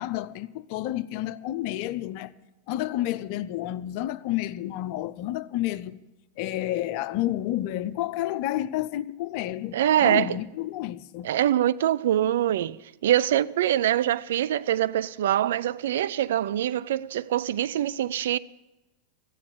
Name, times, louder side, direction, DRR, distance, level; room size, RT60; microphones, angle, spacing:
voice 1, 0.0-2.3 2.7-6.0 6.4-11.3, left 14 dB, 45° left, 0.6 m, -30 dB
voice 2, 9.7-10.4 11.2-18.4, right 11 dB, 60° right, 0.4 m, -24 dB
14.0 x 9.7 x 8.5 m
figure-of-eight pair, 90°, 0 cm